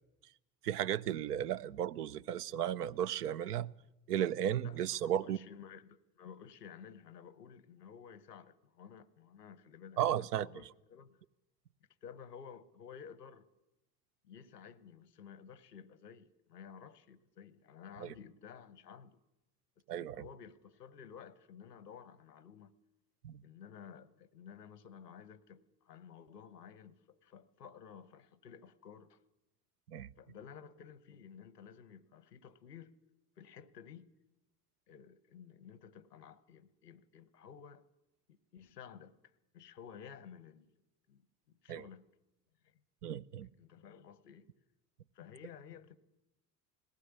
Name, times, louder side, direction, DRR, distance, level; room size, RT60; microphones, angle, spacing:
voice 1, 0.6-3.7 4.1-5.4 10.0-10.5 18.0-18.1 19.9-20.2 23.2-23.4 29.9-30.1 41.7-41.8 43.0-43.5, right 10 dB, 80° right, 0.7 m, -34 dB
voice 2, 4.6-11.2 12.0-13.5 14.2-19.2 20.0-22.7 23.4-29.2 30.2-32.9 33.4-34.1 34.9-37.8 38.3-39.1 39.5-40.7 41.1-41.3 41.6-42.1 42.6-42.7 43.4-44.5 45.1-46.0, left 7 dB, 85° left, 1.1 m, -53 dB
19.0 x 16.0 x 9.8 m
hypercardioid pair, 65°, 46 cm